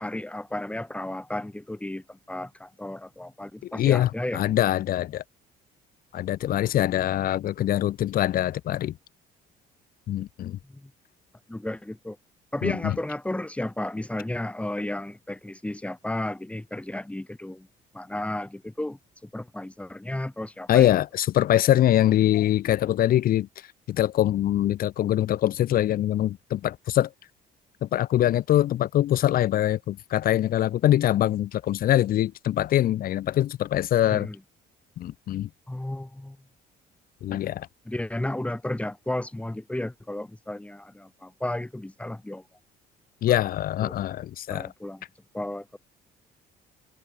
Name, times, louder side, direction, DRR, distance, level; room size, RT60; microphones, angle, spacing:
voice 1, 0.0-4.4 10.8-10.9 11.5-12.2 12.5-17.7 17.9-20.9 34.1-34.4 35.7-36.4 37.3-37.4 37.9-42.4 43.3-43.4 43.8-43.9 44.5-45.0 45.3-45.8, left 1 dB, 5° left, 3.9 m, -33 dB
voice 2, 3.7-5.2 6.1-8.9 10.1-10.6 12.6-12.9 20.7-23.5 23.9-27.1 27.8-34.3 35.0-35.5 37.2-37.7 43.2-44.7, left 12 dB, 60° left, 0.9 m, -23 dB
cardioid pair, 110°, 17 cm